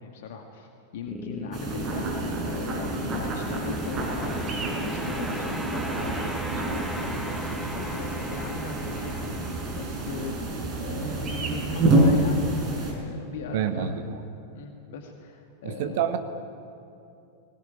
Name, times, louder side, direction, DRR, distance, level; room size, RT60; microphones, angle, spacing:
voice 1, 0.0-4.3 4.7-14.0 14.5-16.1, left 5 dB, 55° left, 3 dB, 2.0 m, -39 dB
sound 1, 1.1-12.3, equal, 5° right, 2.2 m, -38 dB
sound 2, 1.5-12.9, right 2 dB, 30° right, 5.5 m, -28 dB
voice 2, 13.5-14.2 15.6-16.2, right 9 dB, 50° right, 9 dB, 1.4 m, -28 dB
20.0 x 20.0 x 9.5 m, 2.5 s
figure-of-eight pair, 90°, 0 cm